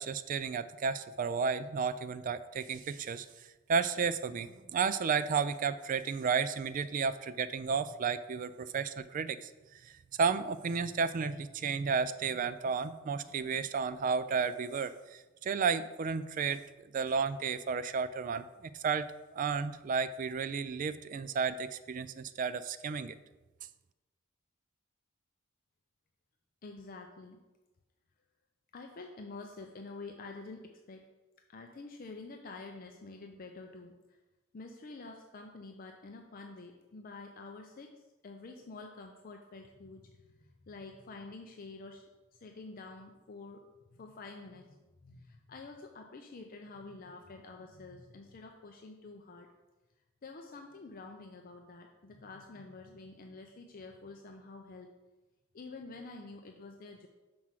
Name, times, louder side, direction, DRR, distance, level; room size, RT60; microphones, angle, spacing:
voice 1, 0.0-3.3 3.7-16.6 16.9-23.2, right 5 dB, 40° right, 13 dB, 0.3 m, -33 dB
voice 2, 26.6-27.4 28.7-31.1 31.5-34.2 34.5-43.6 43.9-49.5 50.2-54.9 55.5-57.1, left 3 dB, 45° left, 3 dB, 0.5 m, -48 dB
6.1 x 4.7 x 5.7 m, 1.1 s
head